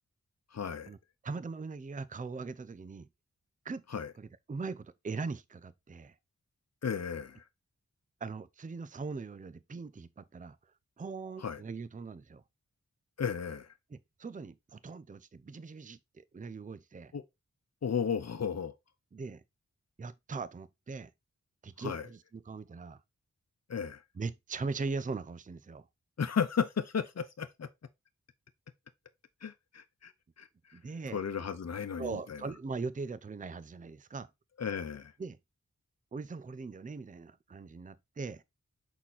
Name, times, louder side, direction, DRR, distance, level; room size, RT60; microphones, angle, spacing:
voice 1, 0.5-0.9 3.9-4.1 6.8-7.4 11.4-11.6 13.2-13.7 17.1-17.2 17.8-18.7 21.8-22.1 23.7-24.0 26.2-27.7 29.4-30.1 30.4-30.8 31.1-32.4 34.6-35.1, left 7 dB, 55° left, 0.8 m, -34 dB
voice 2, 1.2-3.1 3.6-3.8 4.2-6.2 8.2-10.6 11.0-12.4 13.9-17.1 19.1-19.4 20.0-21.1 21.6-23.0 24.2-25.9 30.7-31.2 32.0-34.3 35.2-35.4 36.1-38.4, right 4 dB, 25° right, 0.5 m, -40 dB
6.0 x 4.3 x 4.0 m
wide cardioid pair, 75°, 31 cm